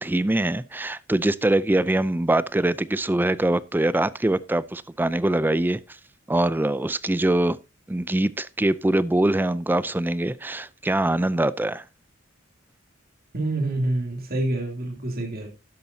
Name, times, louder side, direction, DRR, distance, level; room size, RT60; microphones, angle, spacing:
voice 1, 0.0-5.8 6.3-7.6 7.9-11.8, right 1 dB, 10° right, 0.4 m, -23 dB
voice 2, 13.3-15.5, right 2 dB, 50° right, 2.9 m, -27 dB
12.5 x 10.5 x 2.7 m
head